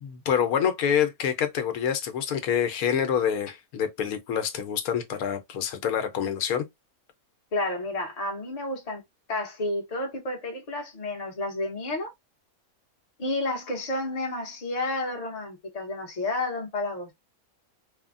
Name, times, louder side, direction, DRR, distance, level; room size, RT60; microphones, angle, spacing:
voice 1, 0.0-6.6, left 8 dB, 75° left, 1.1 m, -26 dB
voice 2, 7.5-9.0 9.3-12.1 13.2-17.1, left 2 dB, 35° left, 0.7 m, -31 dB
3.3 x 2.1 x 2.4 m
omnidirectional pair, 1.6 m